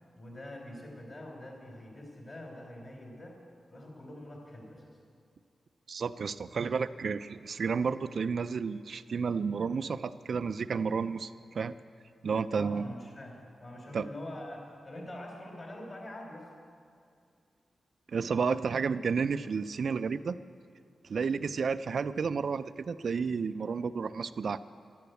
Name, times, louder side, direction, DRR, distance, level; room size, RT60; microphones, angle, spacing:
voice 1, 0.2-3.4 3.7-5.0 12.6-16.5, left 1 dB, 40° left, 0 dB, 4.0 m, -45 dB
voice 2, 5.9-11.3 11.6-11.8 12.2-12.9 13.9-14.1 18.1-20.4 21.1-24.6, right 5 dB, 65° right, 12 dB, 0.4 m, -31 dB
12.0 x 11.5 x 8.1 m, 2.3 s
wide cardioid pair, 95°, 0 cm